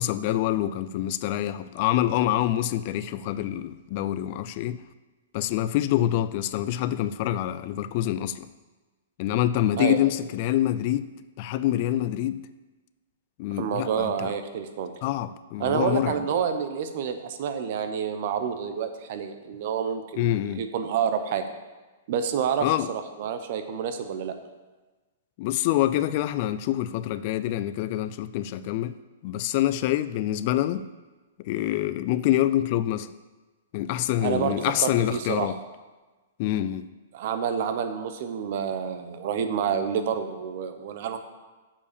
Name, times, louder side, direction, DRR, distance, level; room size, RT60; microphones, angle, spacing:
voice 1, 0.0-4.8 5.3-8.5 9.2-11.1 11.4-12.4 13.4-14.3 15.0-16.2 20.2-20.6 22.6-22.9 25.4-28.9 29.2-30.8 31.4-33.1 33.7-35.6 36.4-36.9, left 13 dB, 45° left, 14 dB, 0.3 m, -26 dB
voice 2, 13.6-14.9 15.6-21.4 22.1-24.3 34.2-34.5 34.8-35.5 37.1-41.2, right 7 dB, 55° right, 8 dB, 0.8 m, -28 dB
7.0 x 4.9 x 6.8 m, 1.2 s
hypercardioid pair, 140°, 0 cm